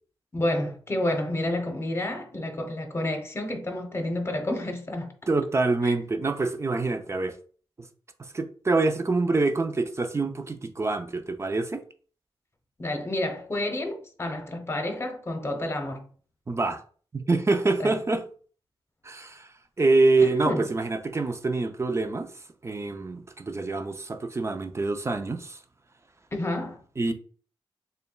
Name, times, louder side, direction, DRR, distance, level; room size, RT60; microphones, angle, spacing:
voice 1, 0.3-5.1 5.8-5.9 12.8-16.1 17.8-17.9 20.5-20.6 26.3-26.8, left 1 dB, 25° left, 0.8 m, -29 dB
voice 2, 5.3-7.4 8.2-11.8 16.5-16.8 17.1-18.3 19.0-25.6 27.0-27.1, right 3 dB, 30° right, 0.4 m, -26 dB
6.6 x 2.2 x 2.3 m
wide cardioid pair, 95°, 10 cm